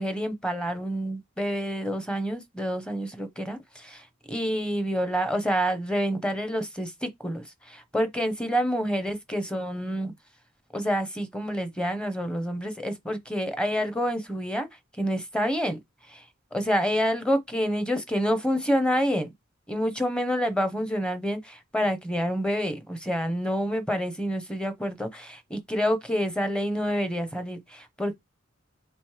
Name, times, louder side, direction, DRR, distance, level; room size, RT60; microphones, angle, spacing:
voice 1, 0.0-10.1 10.7-14.7 15.0-15.8 16.1-16.2 16.5-19.3 19.7-28.2, equal, 5° left, 0.7 m, -28 dB
3.3 x 3.1 x 4.7 m
head